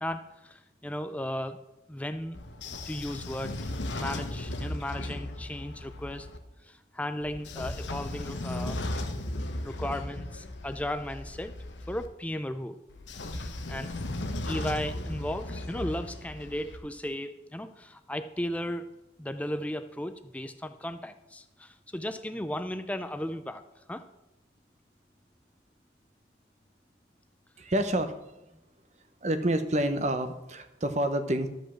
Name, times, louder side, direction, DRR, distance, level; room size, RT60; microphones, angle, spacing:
voice 1, 0.0-1.6 1.9-2.4 2.9-3.6 3.9-6.3 6.6-8.8 9.6-11.6 11.9-12.8 13.3-13.9 14.5-18.9 19.2-23.6 23.9-24.1, left 1 dB, 5° left, 10 dB, 0.4 m, -35 dB
Train / Sliding door, 2.3-6.4 7.2-12.1 12.9-16.8, left 1 dB, 75° left, 1.0 m, -36 dB
voice 2, 27.6-28.1 29.2-31.5, right 1 dB, 40° right, 9 dB, 0.9 m, -28 dB
12.5 x 5.4 x 7.4 m, 0.93 s
head